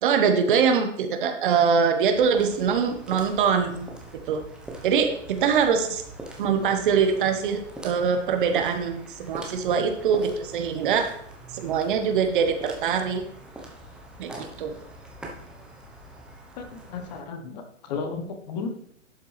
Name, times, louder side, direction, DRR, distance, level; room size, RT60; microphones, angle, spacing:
voice 1, 0.0-3.8 4.3-4.4 4.8-6.0 6.4-11.2 11.5-13.3 14.2-14.7, right 6 dB, 40° right, 7 dB, 1.2 m, -23 dB
sound 1, 2.1-17.2, right 1 dB, ahead, 0.8 m, -43 dB
voice 2, 16.6-18.7, left 5 dB, 35° left, 7 dB, 1.2 m, -34 dB
11.5 x 7.1 x 3.3 m, 0.68 s
hypercardioid pair, 130°, 38 cm